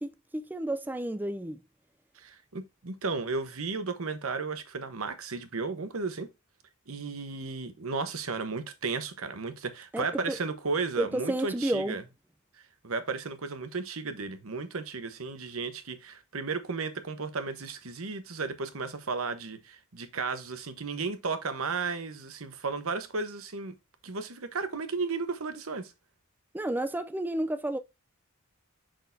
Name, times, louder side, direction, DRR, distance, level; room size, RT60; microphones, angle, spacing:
voice 1, 0.0-1.6 9.9-10.4 11.0-12.0 26.5-27.8, right 1 dB, 10° right, 0.4 m, -31 dB
voice 2, 2.2-6.3 6.9-12.0 12.8-23.7 24.0-25.9, right 4 dB, 70° right, 1.1 m, -34 dB
6.4 x 6.3 x 2.7 m
head